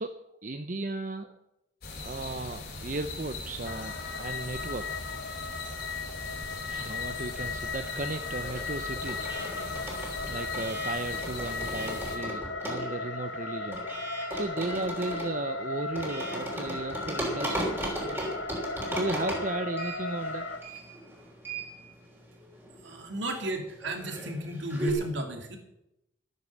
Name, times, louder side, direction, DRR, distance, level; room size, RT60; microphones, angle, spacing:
voice 1, 0.0-1.4 2.0-5.1 6.7-14.0 14.3-18.6 18.9-20.8, right 2 dB, 40° right, 8 dB, 0.7 m, -36 dB
sound 1, 1.8-12.2, left 2 dB, 50° left, 3.8 m, -40 dB
sound 2, 3.6-20.6, left 3 dB, 75° left, 1.7 m, -36 dB
sound 3, 6.1-7.3 7.6-24.9, right 1 dB, 10° right, 3.3 m, -38 dB
voice 2, 22.8-25.6, right 1 dB, 70° right, 4 dB, 2.6 m, -34 dB
13.5 x 9.7 x 7.4 m, 0.88 s
head